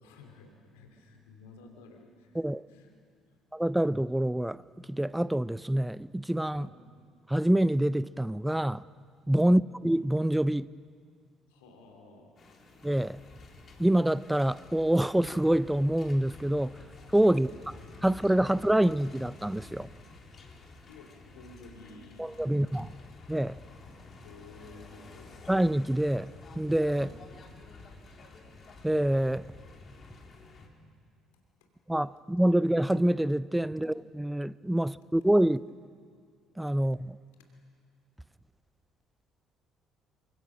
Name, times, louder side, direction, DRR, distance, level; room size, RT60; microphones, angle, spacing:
voice 1, 0.0-2.4 2.7-2.9 3.3-3.4 6.5-6.8 11.5-12.3 17.3-17.5 20.9-23.0 23.8-24.0 24.2-25.3 26.9-27.2 31.6-31.7 37.4-37.5, left 3 dB, 75° left, 3.0 m, -53 dB
voice 2, 3.5-6.7 7.3-8.8 9.3-10.7 12.8-13.2 13.8-16.7 17.1-17.5 18.0-19.9 22.2-22.9 23.3-23.6 25.5-27.1 28.8-29.4 31.9-35.6 36.6-37.2, right 1 dB, 5° right, 0.6 m, -26 dB
sound 1, 12.4-30.7, left 3 dB, 40° left, 4.0 m, -50 dB
28.0 x 24.5 x 6.3 m
figure-of-eight pair, 50°, 0 cm